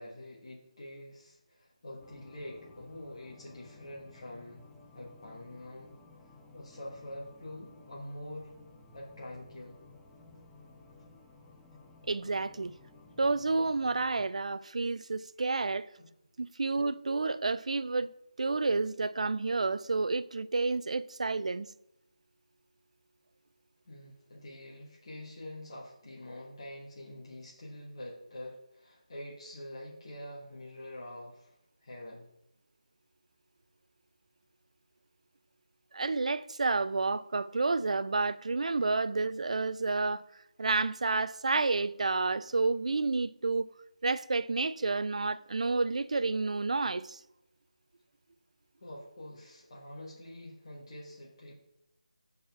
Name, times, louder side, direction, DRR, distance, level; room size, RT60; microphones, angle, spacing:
voice 1, 0.0-4.6 4.9-6.0 6.5-8.5 8.9-9.8 16.0-16.1 23.8-31.5 31.8-32.3 48.8-51.5, left 1 dB, 45° left, 1.4 m, -46 dB
sound 1, 2.0-14.3, left 3 dB, 5° left, 0.4 m, -56 dB
voice 2, 12.1-12.7 13.2-15.9 16.4-18.1 18.4-21.7 35.9-40.2 40.6-43.7 44.0-47.2, right 3 dB, 65° right, 0.3 m, -30 dB
5.1 x 4.1 x 5.8 m
figure-of-eight pair, 165°, 4 cm